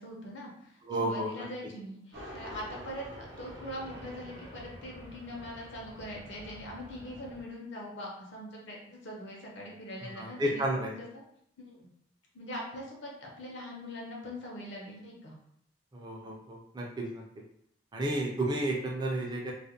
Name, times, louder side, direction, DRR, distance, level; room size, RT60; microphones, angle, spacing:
voice 1, 0.0-11.2 11.6-11.9 12.3-15.4, left 1 dB, 70° left, -2 dB, 0.7 m, -42 dB
voice 2, 0.8-1.4 10.2-10.9 15.9-17.2 17.9-19.5, right 1 dB, 20° right, -1 dB, 0.4 m, -32 dB
sound 1, 2.1-7.4, equal, 75° right, 0.7 m, -47 dB
2.4 x 2.1 x 2.7 m, 0.70 s
head